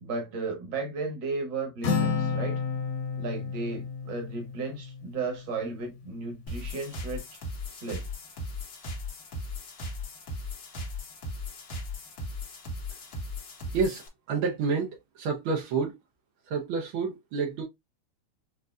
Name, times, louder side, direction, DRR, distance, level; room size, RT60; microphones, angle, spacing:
voice 1, 0.0-2.6 3.2-7.2 7.7-8.1, right 4 dB, 50° right, 1.5 m, -34 dB
Acoustic guitar, 1.8-5.5, left 5 dB, 85° left, 2.4 m, -31 dB
sound 1, 6.5-14.1, left 2 dB, 60° left, 1.0 m, -37 dB
voice 2, 14.3-14.9 15.2-15.9 16.5-17.6, right 5 dB, 75° right, 1.1 m, -28 dB
6.5 x 2.7 x 2.3 m
omnidirectional pair, 3.3 m